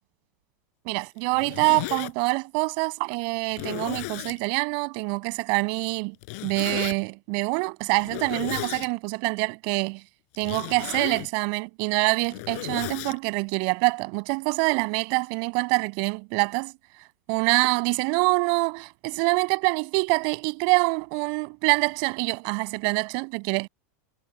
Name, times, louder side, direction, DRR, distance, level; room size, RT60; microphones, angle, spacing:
voice 1, 0.8-6.1 6.4-10.0 10.4-16.7 17.3-23.7, right 36 dB, 55° right, 6.4 m, -25 dB
Zipper (clothing), 1.2-2.1 2.8-2.9 3.5-4.4 6.2-7.0 8.0-8.9 10.3-11.3 12.1-13.2, left 27 dB, 60° left, 5.5 m, -34 dB
supercardioid pair, 145°, 9 cm